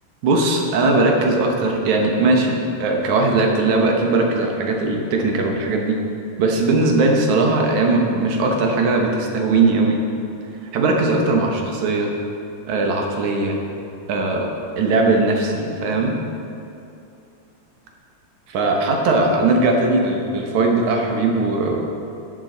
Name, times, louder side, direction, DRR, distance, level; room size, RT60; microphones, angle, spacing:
voice 1, 0.2-6.0 6.4-10.0 10.7-12.1 12.7-13.6 14.1-16.2 18.5-21.8, right 3 dB, 75° right, 1 dB, 2.4 m, -19 dB
12.5 x 7.4 x 3.9 m, 2.8 s
omnidirectional pair, 3.5 m